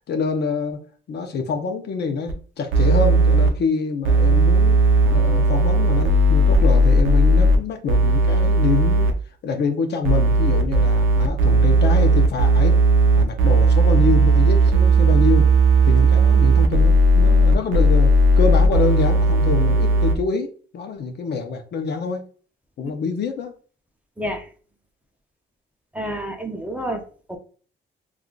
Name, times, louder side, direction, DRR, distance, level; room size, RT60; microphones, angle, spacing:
voice 1, 0.1-4.8 5.1-9.1 9.4-12.8 13.1-15.5 15.8-22.2 22.8-23.5, left 5 dB, 55° left, 0.6 m, -26 dB
sound 1, 2.3-2.4 2.7-3.5 4.0-7.6 7.9-9.1 10.0-20.1, right 2 dB, 80° right, 0.5 m, -16 dB
voice 2, 25.9-27.0 27.3-27.4, equal, 5° right, 0.5 m, -28 dB
3.6 x 2.4 x 2.3 m
cardioid pair, 90°, 20 cm